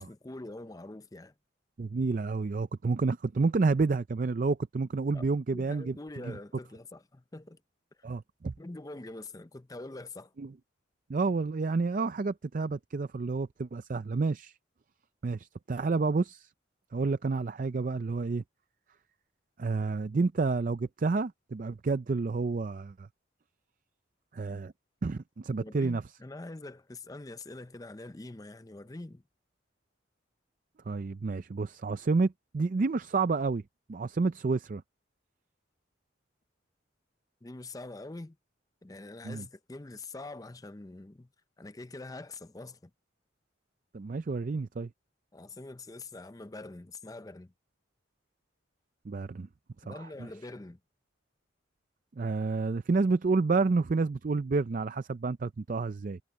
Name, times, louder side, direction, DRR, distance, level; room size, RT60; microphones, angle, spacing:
voice 1, 0.0-1.3 5.1-5.2 5.5-7.6 8.0-8.1 8.6-10.3 25.6-29.2 37.4-38.4 38.8-41.3 41.6-42.9 45.3-47.5 49.8-50.8, left 2 dB, 20° left, 0.5 m, -44 dB
voice 2, 1.8-6.0 6.2-6.4 8.0-8.5 10.4-10.5 11.1-14.5 15.2-16.5 16.9-18.4 19.6-23.1 24.3-24.7 25.0-26.0 30.9-33.6 33.9-34.8 39.2-39.5 43.9-44.9 49.1-49.5 49.9-50.0 52.2-56.2, right 4 dB, 45° right, 0.4 m, -29 dB
head